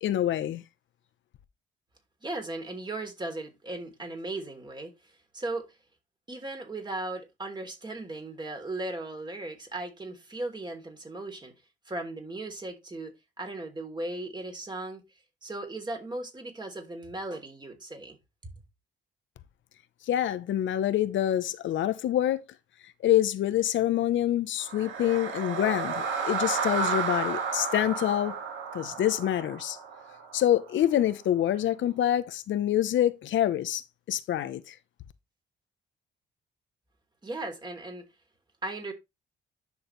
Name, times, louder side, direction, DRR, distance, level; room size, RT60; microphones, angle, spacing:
voice 1, 0.0-0.6 20.0-22.4 22.8-28.4 28.7-29.8 30.3-34.8, left 12 dB, 70° left, 1.0 m, -26 dB
voice 2, 2.2-5.7 6.3-11.5 11.9-15.0 15.4-18.2 18.4-18.5 37.2-38.0 38.6-38.9, right 2 dB, 20° right, 3.5 m, -37 dB
sound 1, 24.6-30.8, right 5 dB, 85° right, 2.2 m, -32 dB
10.5 x 6.6 x 3.3 m
cardioid pair, 90°, 20 cm